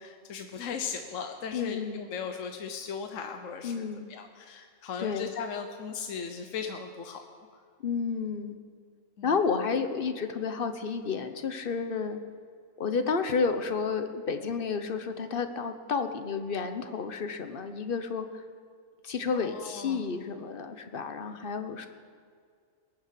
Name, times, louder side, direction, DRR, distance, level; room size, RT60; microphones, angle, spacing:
voice 1, 0.0-7.2 9.2-9.3 19.3-20.0, left 6 dB, 70° left, 5 dB, 1.2 m, -38 dB
voice 2, 1.5-2.0 3.6-4.1 5.0-5.3 7.8-8.6 9.2-12.2 12.8-18.4 19.0-21.9, left 5 dB, 45° left, 8 dB, 1.1 m, -31 dB
21.0 x 7.5 x 8.3 m, 2.1 s
omnidirectional pair, 1.4 m